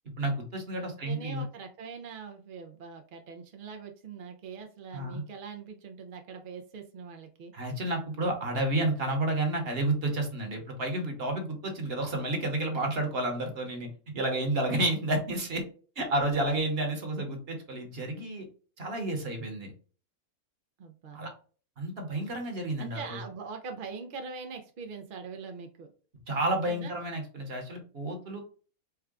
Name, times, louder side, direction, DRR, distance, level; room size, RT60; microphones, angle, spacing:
voice 1, 0.2-1.4 4.9-5.2 7.5-15.6 16.0-18.4 18.8-19.7 21.1-21.3 21.8-23.2 26.3-28.4, right 1 dB, 45° right, 3 dB, 1.2 m, -30 dB
voice 2, 0.7-7.5 20.8-21.2 22.8-25.9 26.7-27.0, right 5 dB, 70° right, 4 dB, 0.5 m, -42 dB
4.5 x 2.3 x 3.6 m, 0.39 s
omnidirectional pair, 1.6 m